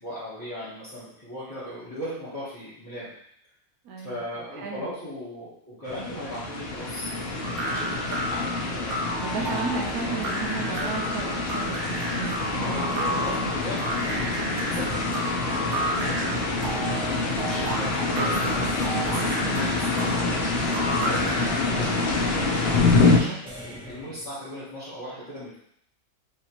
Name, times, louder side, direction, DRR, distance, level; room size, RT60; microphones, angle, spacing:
voice 1, 0.0-3.1 4.0-9.0 9.4-10.2 10.6-11.0 12.6-13.8 14.7-21.9 22.3-25.6, equal, 15° left, -12 dB, 0.9 m, -38 dB
voice 2, 3.8-4.2 4.5-4.9 7.9-8.1 9.2-13.5, right 5 dB, 80° right, -1 dB, 1.1 m, -34 dB
sound 1, 5.9-23.2, left 3 dB, 55° left, 0.7 m, -26 dB
sound 2, 7.4-21.6, right 1 dB, 60° right, 0.8 m, -32 dB
sound 3, 16.3-17.6 18.6-20.3 21.1-22.2 23.5-24.3, left 1 dB, 5° right, 0.4 m, -43 dB
3.3 x 2.8 x 2.9 m, 0.70 s
omnidirectional pair, 1.6 m